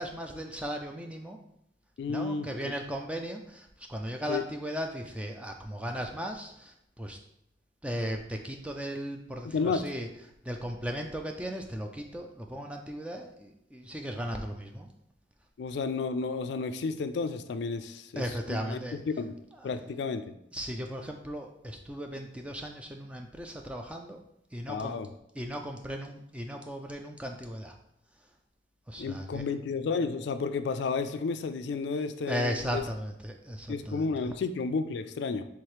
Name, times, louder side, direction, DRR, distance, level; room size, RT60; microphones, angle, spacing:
voice 1, 0.0-1.4 2.1-7.2 7.8-10.1 10.4-14.9 18.2-19.0 19.6-19.7 20.5-24.2 24.5-25.0 25.4-27.7 28.9-29.4 32.3-34.0, equal, 5° right, 3 dB, 0.4 m, -36 dB
voice 2, 2.0-2.7 4.3-4.4 9.4-9.8 15.6-18.8 19.2-19.4 19.6-20.4 24.7-25.1 29.0-32.8 33.7-35.4, left 4 dB, 70° left, 10 dB, 0.3 m, -32 dB
4.7 x 3.5 x 3.1 m, 0.81 s
head